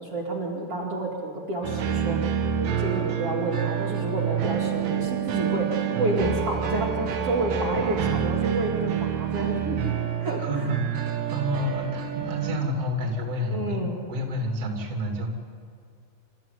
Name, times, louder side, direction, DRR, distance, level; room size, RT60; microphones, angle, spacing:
voice 1, 0.0-2.2 2.6-9.9 10.2-10.7 13.5-14.0, right 2 dB, 45° right, -4 dB, 2.9 m, -30 dB
sound 1, 1.6-12.6, right 8 dB, 65° right, 3.0 m, -27 dB
voice 2, 10.4-15.3, equal, 25° right, 1 dB, 2.8 m, -29 dB
27.5 x 14.0 x 9.2 m, 2.4 s
omnidirectional pair, 4.4 m